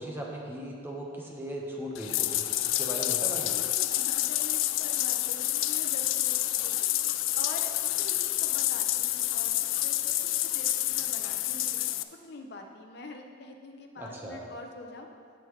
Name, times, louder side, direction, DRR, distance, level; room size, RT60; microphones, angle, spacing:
voice 1, 0.0-3.5 14.0-14.4, equal, 10° right, -2 dB, 1.1 m, -38 dB
Bathtub (filling or washing), 1.9-12.0, left 15 dB, 85° left, 0.4 m, -28 dB
voice 2, 3.5-6.9 7.3-10.0 10.4-15.1, left 2 dB, 60° left, 4 dB, 0.7 m, -45 dB
16.5 x 5.7 x 3.2 m, 2.1 s
head